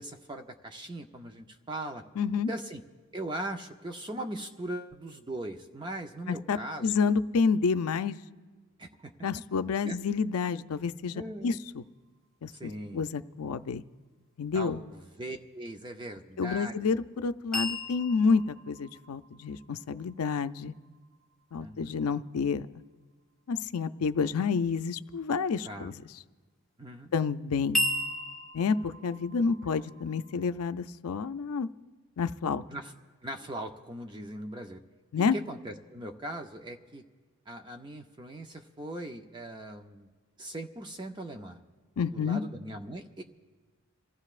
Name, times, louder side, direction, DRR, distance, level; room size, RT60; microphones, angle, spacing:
voice 1, 0.0-2.0 2.5-2.8 3.1-7.0 8.8-9.1 9.8-10.0 11.1-11.6 12.5-13.1 14.5-16.7 21.6-21.9 25.6-25.9 26.8-27.1 32.7-32.9 33.2-34.8 35.3-37.0 37.5-40.1 40.4-41.6 42.1-43.2, right 1 dB, 20° right, 5 dB, 0.5 m, -40 dB
voice 2, 2.2-2.5 6.3-8.2 9.2-11.8 12.4-13.8 14.4-14.8 16.4-20.7 21.5-22.7 23.5-26.0 27.1-27.8 28.5-31.7 32.2-32.6 35.1-35.4 42.0-42.4, left 5 dB, 80° left, 12 dB, 0.5 m, -29 dB
sound 1, 17.5-21.5 27.7-30.5, left 1 dB, ahead, 1.2 m, -36 dB
28.0 x 15.0 x 2.5 m, 1.5 s
head